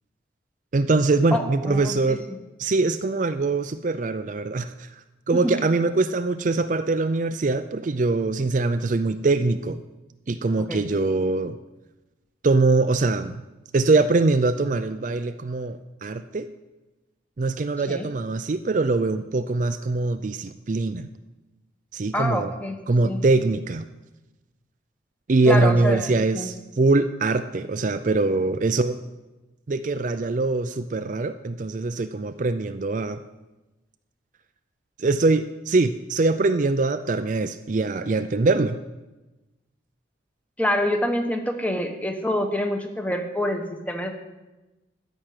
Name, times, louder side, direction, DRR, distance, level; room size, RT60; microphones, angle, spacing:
voice 1, 0.7-2.2 2.6-4.9 5.3-9.8 10.3-11.6 12.4-13.4 13.7-16.5 17.4-21.1 21.9-22.5 22.9-23.8 25.3-29.0 29.7-33.2 35.0-38.8, right 3 dB, 40° right, 10 dB, 0.4 m, -23 dB
voice 2, 1.3-2.4 5.4-5.5 10.7-10.8 17.9-18.1 22.1-22.8 23.0-23.2 25.4-26.5 40.6-44.2, left 1 dB, 5° left, 5 dB, 1.1 m, -26 dB
13.0 x 6.2 x 9.3 m, 1.1 s
head